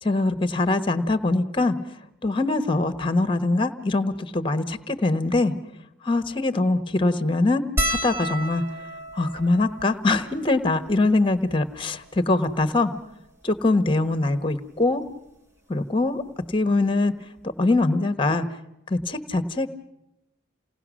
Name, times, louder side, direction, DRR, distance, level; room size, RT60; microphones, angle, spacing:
voice 1, 0.0-1.7 2.2-5.5 6.0-7.6 7.9-8.6 9.1-12.9 13.4-15.0 15.7-16.2 16.5-17.1 17.6-18.4 18.9-19.7, left 2 dB, 25° left, 10 dB, 1.0 m, -23 dB
sound 1, 7.8-12.4 13.1-13.2 13.4-13.6 14.9-15.1 16.5-16.6 16.9-17.1, equal, 15° right, 1.0 m, -32 dB
28.0 x 18.0 x 6.2 m, 0.88 s
head